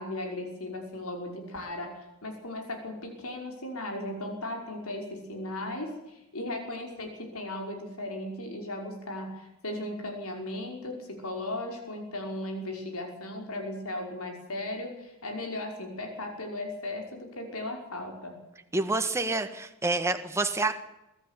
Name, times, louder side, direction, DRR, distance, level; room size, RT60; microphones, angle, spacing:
voice 1, 0.0-18.4, left 1 dB, 80° left, 3 dB, 5.7 m, -37 dB
voice 2, 18.7-20.7, right 2 dB, 10° right, 7 dB, 1.6 m, -28 dB
22.5 x 13.5 x 9.9 m, 0.93 s
head